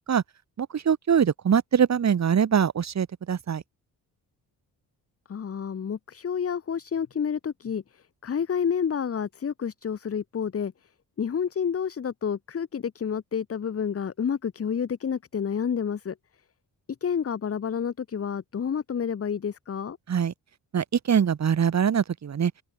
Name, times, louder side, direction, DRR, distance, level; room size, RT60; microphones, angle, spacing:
voice 1, 0.6-3.6 20.1-20.3 20.7-22.5, right 7 dB, 45° right, 2.9 m, -23 dB
voice 2, 5.3-10.7 11.2-16.1 17.0-20.0, left 7 dB, 40° left, 1.7 m, -29 dB
open air
cardioid pair, 105°, 37 cm